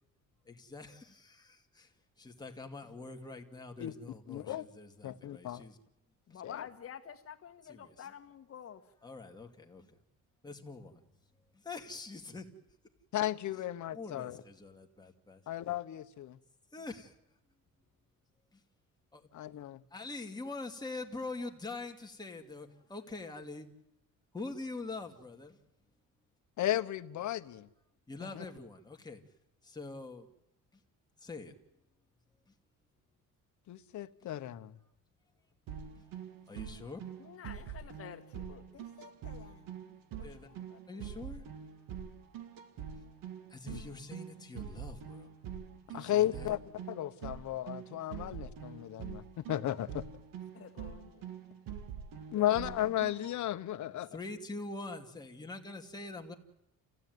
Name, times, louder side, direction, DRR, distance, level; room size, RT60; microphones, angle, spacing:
voice 1, 0.5-1.9 2.2-5.8 6.3-6.4 7.6-8.1 9.0-9.9 10.4-10.9 11.5-12.5 13.9-15.4 16.7-17.1 18.5-18.6 19.1-19.3 19.9-23.7 24.3-25.6 28.1-29.2 29.6-30.3 31.2-31.6 32.5-32.6 34.2-34.3 36.0-36.1 36.5-37.0 40.2-40.5 40.9-41.4 43.5-45.3 45.9-46.5 52.4-52.6 54.1-56.3, left 3 dB, 10° left, 2.3 m, -44 dB
voice 2, 4.3-4.7 5.0-5.6 6.4-6.7 13.1-14.4 15.5-16.4 19.3-19.8 26.6-27.7 28.4-28.5 33.7-34.7 43.7-43.8 45.9-46.6 46.9-50.0 52.3-54.1, left 13 dB, 60° left, 1.2 m, -34 dB
voice 3, 6.3-8.8 37.2-40.8 50.5-51.3, left 9 dB, 40° left, 1.8 m, -50 dB
sound 1, 35.7-53.3, right 8 dB, 80° right, 2.4 m, -45 dB
29.0 x 15.5 x 9.4 m
cardioid pair, 150°, 34 cm